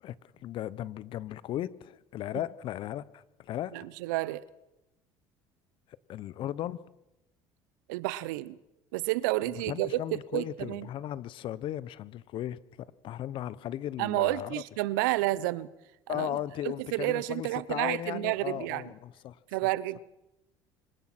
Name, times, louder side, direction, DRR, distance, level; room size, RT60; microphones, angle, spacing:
voice 1, 0.0-3.9 6.1-6.8 9.7-14.6 16.1-19.4, left 12 dB, 60° left, 1.1 m, -36 dB
voice 2, 3.7-4.4 7.9-8.6 8.9-10.0 10.3-10.9 14.0-15.7 16.1-16.4 16.9-18.8 19.5-20.0, right 17 dB, 85° right, 1.0 m, -30 dB
26.0 x 17.0 x 6.2 m
supercardioid pair, 85°, 10 cm